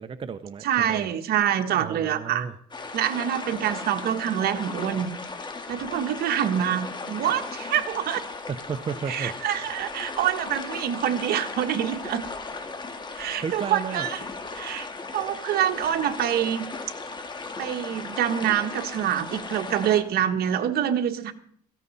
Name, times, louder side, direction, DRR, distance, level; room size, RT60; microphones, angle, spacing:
voice 1, 0.0-1.1 1.8-2.5 8.5-9.4 13.4-14.1, right 6 dB, 30° right, 10 dB, 0.7 m, -33 dB
voice 2, 0.6-2.5 2.9-5.1 5.7-8.2 9.1-12.2 13.1-14.2 14.5-14.9 15.1-16.7 17.6-21.3, right 10 dB, 65° right, 7 dB, 1.5 m, -26 dB
sound 1, 2.7-20.0, left 3 dB, 25° left, 2.1 m, -37 dB
17.0 x 14.5 x 4.2 m, 0.62 s
cardioid pair, 110°, 17 cm